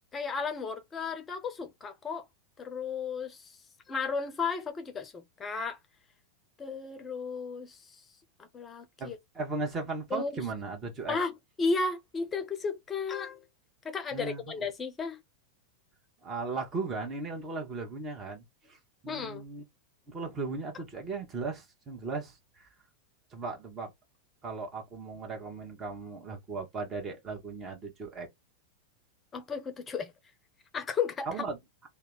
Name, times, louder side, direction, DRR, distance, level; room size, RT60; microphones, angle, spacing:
voice 1, 0.1-2.2 2.6-3.5 3.9-5.8 6.6-7.8 8.4-9.2 10.1-10.4 11.1-11.3 11.6-13.4 13.8-15.2 19.1-19.4 29.3-30.1 30.7-31.3, left 4 dB, 20° left, 0.7 m, -34 dB
voice 2, 9.0-11.2 14.1-14.6 16.2-18.8 19.0-19.6 20.1-22.7 23.3-23.9 24.4-28.3 31.3-31.6, right 4 dB, 25° right, 1.2 m, -37 dB
2.8 x 2.2 x 3.8 m
figure-of-eight pair, 90°, 0 cm